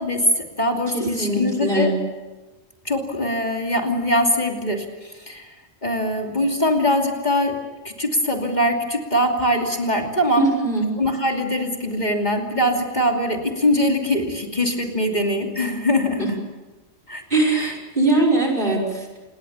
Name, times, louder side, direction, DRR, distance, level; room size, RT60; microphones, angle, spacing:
voice 1, 0.0-1.9 2.8-5.5 5.8-7.5 7.8-10.4 11.0-16.3 17.1-17.2 17.5-17.7, left 1 dB, 40° left, 2 dB, 3.0 m, -22 dB
voice 2, 0.9-1.9 10.4-10.9 16.2-16.3 17.3-19.2, right 2 dB, 45° right, 2 dB, 6.0 m, -21 dB
27.5 x 21.0 x 7.2 m, 1.2 s
omnidirectional pair, 1.2 m